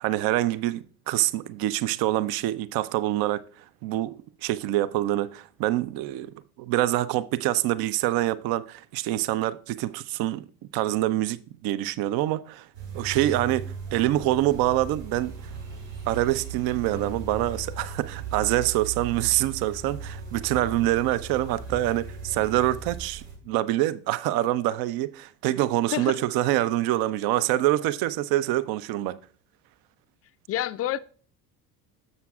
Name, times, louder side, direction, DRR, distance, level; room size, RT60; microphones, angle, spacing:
voice 1, 0.0-3.4 3.8-4.1 4.4-6.3 6.6-10.5 10.7-12.7 12.9-15.4 16.1-29.2, right 15 dB, 50° right, 0.6 m, -25 dB
sound 1, 12.7-23.3, right 5 dB, 80° right, 4.6 m, -37 dB
voice 2, 25.9-26.2 30.5-31.0, left 13 dB, 30° left, 0.4 m, -28 dB
11.0 x 7.3 x 2.4 m
hypercardioid pair, 60°, 48 cm